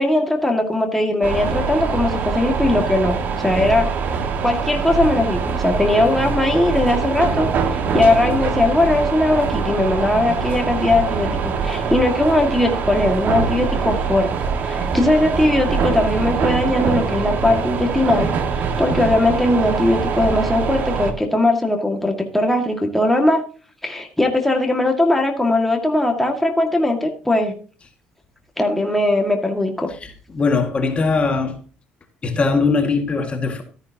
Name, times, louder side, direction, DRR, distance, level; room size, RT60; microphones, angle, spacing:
voice 1, 0.0-3.9 4.4-7.5 7.9-14.3 14.6-23.4 23.8-27.6 28.6-29.9, left 1 dB, 5° left, 2.0 m, -19 dB
sound 1, 1.2-21.1, right 5 dB, 60° right, 1.7 m, -23 dB
voice 2, 29.9-31.6 32.2-33.6, left 4 dB, 35° left, 2.0 m, -20 dB
13.0 x 10.5 x 2.9 m
cardioid pair, 95°, 4 cm